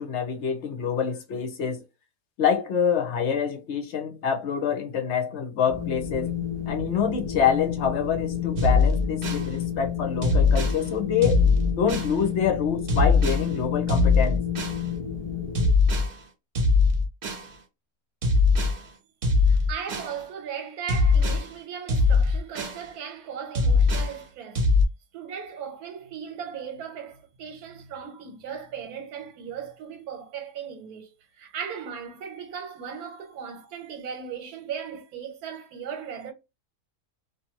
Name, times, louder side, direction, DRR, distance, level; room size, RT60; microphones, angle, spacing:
voice 1, 0.0-1.8 2.4-6.3 6.7-11.4 11.8-14.4, left 7 dB, 60° left, 0.8 m, -26 dB
Wind, 5.7-15.7, left 9 dB, 40° left, 0.4 m, -31 dB
sound 1, 8.6-9.5 10.2-10.8 11.2-12.1 12.9-13.5 13.9-14.8 15.5-16.1 16.5-17.5 18.2-18.8 19.2-20.1 20.9-21.4 21.9-22.8 23.5-24.1 24.5-24.8, left 4 dB, 45° right, 0.8 m, -21 dB
voice 2, 19.4-24.6 25.1-31.1 31.3-36.3, right 7 dB, 80° right, 1.2 m, -37 dB
2.6 x 2.6 x 2.8 m
omnidirectional pair, 1.6 m